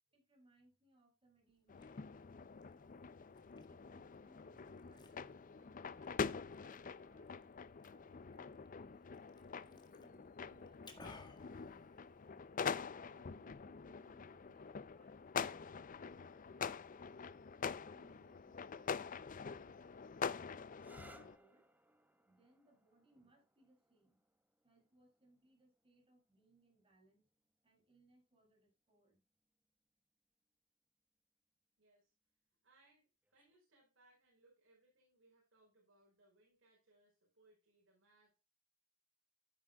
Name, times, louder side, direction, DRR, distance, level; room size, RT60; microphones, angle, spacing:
voice 1, 0.1-3.2 3.7-7.4 7.9-9.0 9.3-12.5 13.0-16.5 17.1-17.4 17.6-20.1 20.5-21.7 22.2-24.2 24.6-27.3 27.6-29.2, right 2 dB, 30° right, 6.9 m, -72 dB
Liquid, 1.5-12.5, left 3 dB, 20° left, 1.7 m, -64 dB
sound 1, 1.7-21.4, left 6 dB, 40° left, 0.5 m, -45 dB
sound 2, 20.7-28.2 29.2-29.7 33.2-33.6, right 1 dB, 10° right, 1.1 m, -67 dB
voice 2, 31.8-32.1 32.6-38.4, right 2 dB, 70° right, 5.0 m, -72 dB
12.5 x 10.5 x 2.3 m
head